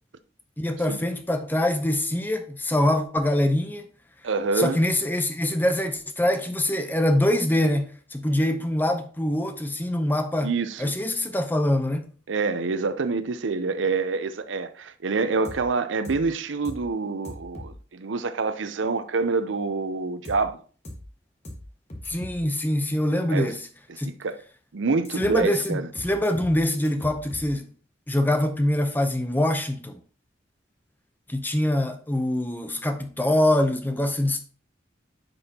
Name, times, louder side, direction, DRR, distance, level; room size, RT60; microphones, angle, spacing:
voice 1, 0.6-3.9 4.6-10.5 10.8-12.1 22.1-23.7 24.0-24.1 25.2-27.7 28.1-29.9 31.3-34.4, left 1 dB, 10° left, 0.6 m, -24 dB
voice 2, 4.2-4.8 10.4-10.9 12.3-20.6 23.3-23.5 24.0-24.4 24.7-25.9, right 4 dB, 90° right, 0.6 m, -26 dB
sound 1, 15.4-15.6 16.0-16.2 16.6-16.8 17.2-17.7 20.2-20.4 20.8-21.0 21.4-21.6 21.9-22.4 25.0-25.4 25.6-25.7 25.9-26.6 26.8-27.5, left 1 dB, 35° left, 1.4 m, -39 dB
9.7 x 5.3 x 2.9 m
head